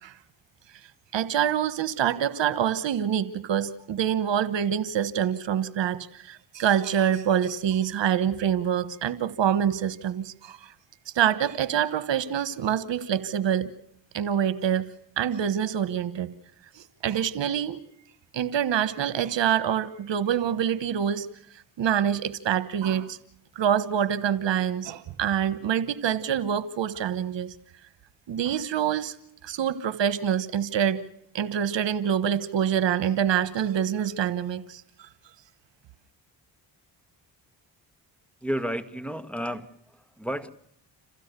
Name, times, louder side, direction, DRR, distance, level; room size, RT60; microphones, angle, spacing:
voice 1, 1.1-10.7 11.1-13.7 14.1-14.8 15.2-16.3 16.7-17.8 18.3-21.3 21.8-23.2 23.5-27.5 28.3-29.1 29.4-31.0 31.3-35.1, right 9 dB, 75° right, 15 dB, 1.4 m, -26 dB
voice 2, 38.4-40.5, equal, 5° left, 10 dB, 1.7 m, -32 dB
27.5 x 15.5 x 6.8 m, 0.74 s
cardioid pair, 60°, 44 cm